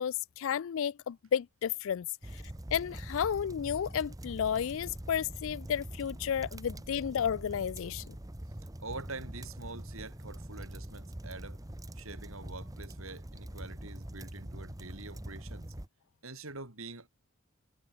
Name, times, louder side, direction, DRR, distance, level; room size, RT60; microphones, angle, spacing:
voice 1, 0.0-2.1 2.3-2.4 2.7-8.2, left 8 dB, 65° left, 0.4 m, -32 dB
sound 1, 2.2-15.9, right 1 dB, 15° right, 1.0 m, -44 dB
voice 2, 8.8-11.6 12.0-15.7 16.2-17.1, right 3 dB, 70° right, 6.8 m, -45 dB
head